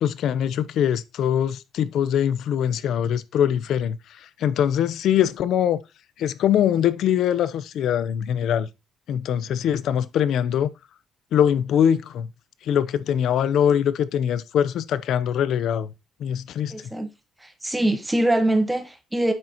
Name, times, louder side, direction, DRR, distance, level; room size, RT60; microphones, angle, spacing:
voice 1, 0.0-5.8 6.2-8.7 9.1-10.7 11.3-12.3 12.6-15.9 16.2-16.7, left 9 dB, 70° left, 0.7 m, -22 dB
voice 2, 16.7-17.1 17.4-19.3, right 1 dB, 10° right, 1.3 m, -23 dB
8.8 x 6.3 x 2.9 m
cardioid pair, 135°, 0 cm